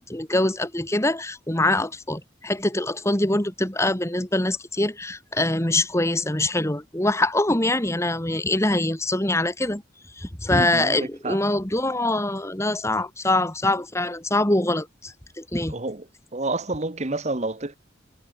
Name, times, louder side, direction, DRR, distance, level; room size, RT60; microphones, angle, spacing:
voice 1, 0.0-9.8 10.2-15.7, left 2 dB, 15° left, 2.0 m, -24 dB
voice 2, 10.5-11.4 15.7-16.0 16.3-17.7, right 2 dB, 35° right, 1.4 m, -29 dB
head